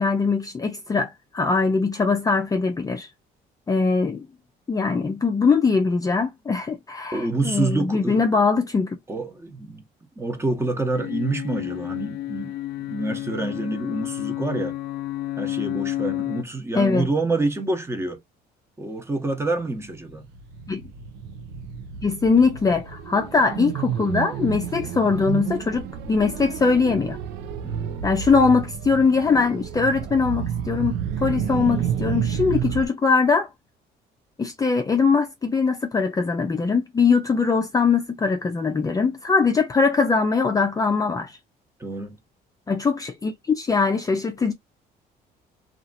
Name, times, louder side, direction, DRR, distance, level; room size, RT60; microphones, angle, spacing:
voice 1, 0.0-3.1 3.7-4.3 4.7-9.0 16.8-17.1 20.7-20.8 22.0-27.2 28.0-33.5 34.4-41.4 42.7-44.5, left 4 dB, 20° left, 0.5 m, -21 dB
voice 2, 7.1-8.3 9.1-9.8 10.2-14.7 15.4-18.2 18.8-20.2 27.6-28.1 41.8-42.2, right 2 dB, 15° right, 0.9 m, -27 dB
sound 1, 10.9-16.4, left 14 dB, 75° left, 0.5 m, -30 dB
sound 2, 19.8-32.9, right 9 dB, 90° right, 0.5 m, -30 dB
2.8 x 2.5 x 2.4 m
cardioid pair, 110°, 17 cm